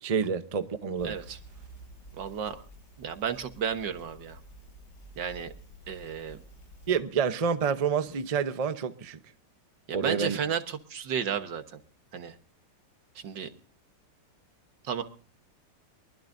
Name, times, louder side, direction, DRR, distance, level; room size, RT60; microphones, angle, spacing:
voice 1, 0.0-1.2 6.9-9.2 9.9-10.4, right 6 dB, 35° right, 0.6 m, -28 dB
Crackle, 1.0-7.0, right 1 dB, 70° left, 6.5 m, -51 dB
voice 2, 1.0-1.4 2.2-2.6 3.0-4.4 5.2-5.5 5.9-6.4 9.9-11.8 12.1-12.3 13.2-13.5 14.8-15.0, right 7 dB, 85° right, 1.9 m, -33 dB
23.0 x 20.0 x 2.6 m
omnidirectional pair, 1.9 m